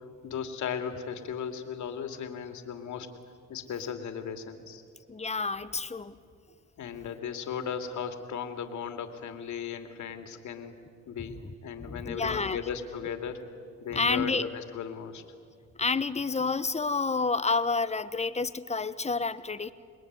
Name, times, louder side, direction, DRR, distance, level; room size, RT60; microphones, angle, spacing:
voice 1, 0.2-3.1 3.5-4.8 6.8-10.8 11.1-13.5 13.8-15.2, left 7 dB, 70° left, 7 dB, 2.7 m, -36 dB
voice 2, 5.1-6.2 11.3-11.5 11.8-12.6 13.9-14.4 15.8-19.7, left 4 dB, 20° left, 13 dB, 1.2 m, -29 dB
27.5 x 21.5 x 9.6 m, 2.2 s
cardioid pair, 90°, 30 cm